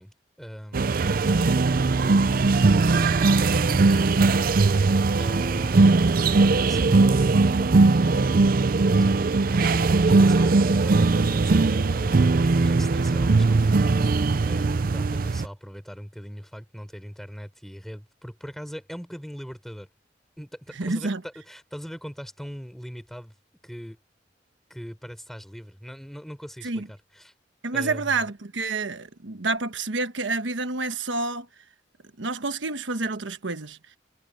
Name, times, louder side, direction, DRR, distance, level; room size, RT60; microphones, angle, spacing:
voice 1, 0.0-2.4 2.7-14.1 14.4-19.9 20.4-23.3 23.6-24.0 24.7-27.3 27.7-28.3, equal, ahead, 6.2 m, -41 dB
sound 1, 0.7-15.5, right 3 dB, 50° right, 0.5 m, -20 dB
voice 2, 20.8-21.2 26.6-26.9 27.6-31.5 32.2-33.8, right 3 dB, 90° right, 1.2 m, -28 dB
head